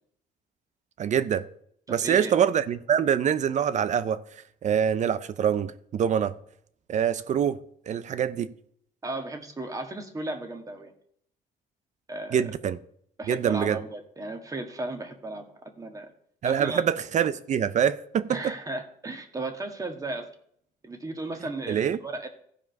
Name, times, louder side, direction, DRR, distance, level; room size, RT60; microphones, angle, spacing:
voice 1, 1.0-1.5 1.9-6.4 6.9-7.6 7.9-8.5 12.3-12.8 13.3-13.8 16.4-18.5 21.7-22.0, right 8 dB, 45° right, 0.6 m, -25 dB
voice 2, 1.9-2.3 9.0-10.9 12.1-12.5 13.2-16.1 16.4-16.8 18.3-20.3 20.8-22.3, right 2 dB, 20° right, 1.6 m, -35 dB
15.0 x 5.1 x 5.2 m
cardioid pair, 110°, 17 cm